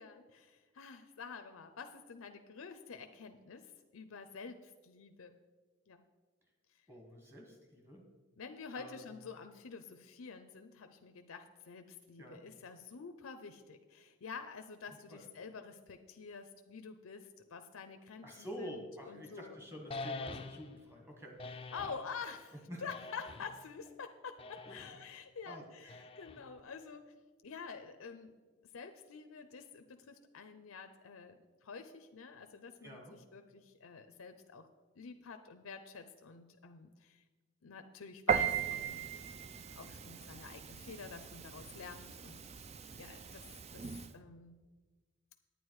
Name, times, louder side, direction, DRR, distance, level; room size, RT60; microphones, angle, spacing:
voice 1, 0.0-5.4 5.9-6.0 8.4-19.6 21.7-34.7 35.0-37.2 37.6-39.1 39.8-42.6 43.0-44.6, left 5 dB, 85° left, 7 dB, 0.6 m, -49 dB
voice 2, 6.9-8.1 8.7-9.1 12.2-12.4 14.9-15.2 18.2-21.9 22.7-22.9 24.6-24.8 25.5-26.0 32.8-33.1, equal, 10° right, 1 dB, 1.6 m, -49 dB
sound 1, 19.9-20.8 21.4-22.1 22.9-23.6 24.4-25.0 25.9-26.6, left 3 dB, 25° left, 0.4 m, -45 dB
Piano, 38.3-44.1, right 7 dB, 30° right, 0.4 m, -38 dB
9.3 x 9.2 x 4.7 m, 1.3 s
head